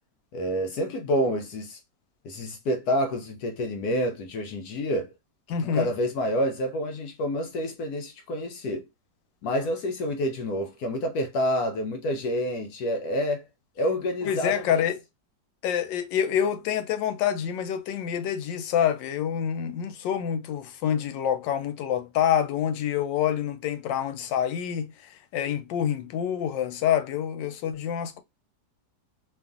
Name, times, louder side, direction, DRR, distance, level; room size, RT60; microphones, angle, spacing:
voice 1, 0.3-1.8 2.2-5.1 5.6-8.9 9.4-13.4 13.8-14.8, equal, 70° left, 1.0 m, -28 dB
voice 2, 5.5-5.9 14.2-15.0 15.6-28.2, left 9 dB, 90° left, 1.3 m, -27 dB
3.0 x 2.4 x 2.4 m
omnidirectional pair, 1.9 m